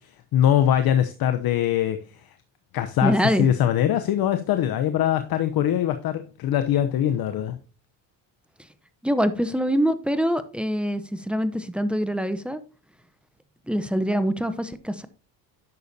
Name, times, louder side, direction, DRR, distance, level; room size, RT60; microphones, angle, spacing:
voice 1, 0.3-2.0 2.7-7.6, left 10 dB, 55° left, 0.9 m, -22 dB
voice 2, 3.0-3.5 9.0-12.6 13.7-15.1, equal, ahead, 0.8 m, -24 dB
10.5 x 6.8 x 2.8 m
supercardioid pair, 95°, 44 cm